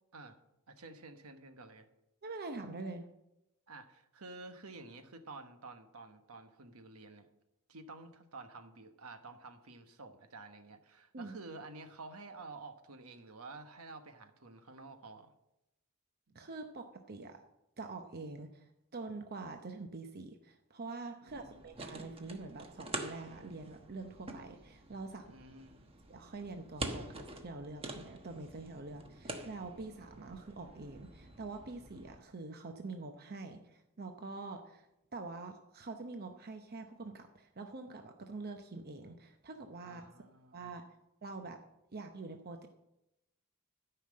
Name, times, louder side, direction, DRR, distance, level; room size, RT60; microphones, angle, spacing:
voice 1, 0.7-1.9 3.7-7.3 7.7-15.3 21.2-21.6 25.2-25.8 39.8-40.7, right 3 dB, 70° right, 7 dB, 1.2 m, -51 dB
voice 2, 2.2-3.1 11.1-11.3 16.3-17.4 17.8-25.4 26.1-34.9 35.1-40.0 40.5-40.8 41.2-41.6 41.9-42.7, right 3 dB, 45° right, 5 dB, 0.8 m, -45 dB
sound 1, 21.3-32.2, right 2 dB, 25° right, 1.1 m, -46 dB
13.0 x 5.8 x 7.5 m, 0.89 s
head